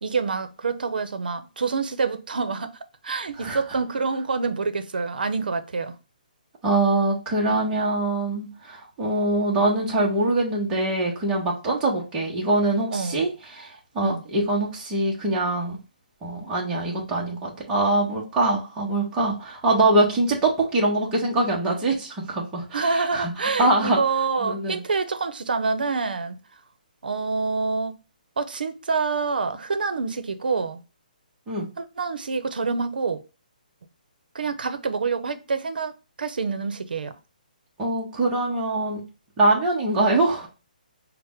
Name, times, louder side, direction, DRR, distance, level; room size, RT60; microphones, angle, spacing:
voice 1, 0.0-2.7 3.0-6.0 12.9-13.2 14.0-14.2 22.7-26.4 27.0-27.9 28.4-30.8 31.8-33.2 34.3-35.9 36.2-37.1, right 4 dB, 80° right, 0.6 m, -27 dB
voice 2, 6.6-15.8 16.2-24.0 24.4-24.8 31.5-31.7 37.8-39.0 39.4-40.5, right 2 dB, 10° right, 0.7 m, -23 dB
5.5 x 2.1 x 3.5 m
hypercardioid pair, 175°, 5 cm